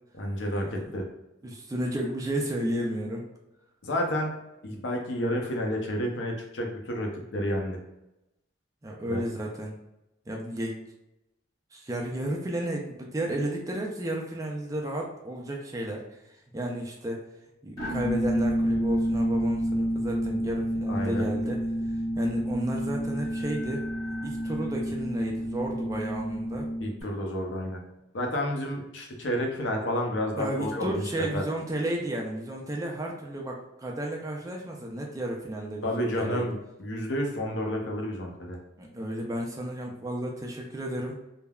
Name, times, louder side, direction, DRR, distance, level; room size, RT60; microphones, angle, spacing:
voice 1, 0.1-1.1 3.8-4.3 4.6-7.8 9.1-9.2 20.9-21.3 26.8-27.8 28.1-31.0 31.3-31.4 35.8-38.6, equal, 70° left, 1 dB, 0.6 m, -30 dB
voice 2, 1.4-3.3 8.8-9.8 10.3-10.8 11.7-17.2 17.6-21.6 22.2-23.8 24.2-26.7 30.4-36.5 38.8-41.2, right 1 dB, 15° right, 0 dB, 0.3 m, -33 dB
sound 1, 17.8-27.0, equal, 15° left, 1.2 m, -29 dB
3.3 x 2.0 x 2.3 m, 0.91 s
head